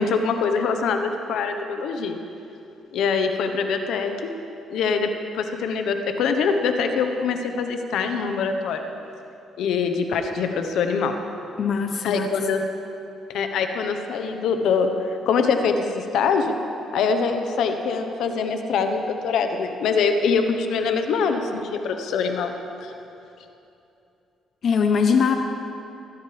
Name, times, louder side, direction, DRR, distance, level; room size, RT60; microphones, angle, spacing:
voice 1, 0.0-2.2 2.9-4.3 4.7-5.1 5.3-8.8 9.6-11.1 12.0-12.6 13.3-16.5 16.9-22.5 22.8-22.9, left 5 dB, 80° left, 6 dB, 1.2 m, -24 dB
voice 2, 11.6-12.3 24.6-25.4, left 6 dB, 55° left, 5 dB, 0.9 m, -21 dB
20.5 x 15.5 x 3.5 m, 2.8 s
cardioid pair, 90°, 0 cm